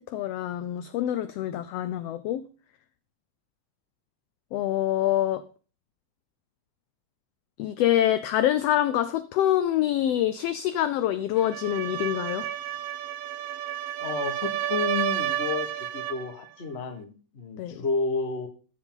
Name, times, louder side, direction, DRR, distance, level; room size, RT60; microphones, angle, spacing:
voice 1, 0.1-2.4 4.5-5.4 7.6-12.5 17.6-17.8, left 12 dB, 80° left, 1.4 m, -25 dB
sound 1, 11.4-16.3, right 11 dB, 75° right, 1.6 m, -31 dB
voice 2, 14.0-18.5, left 4 dB, 40° left, 0.9 m, -31 dB
13.5 x 7.1 x 3.9 m
omnidirectional pair, 3.3 m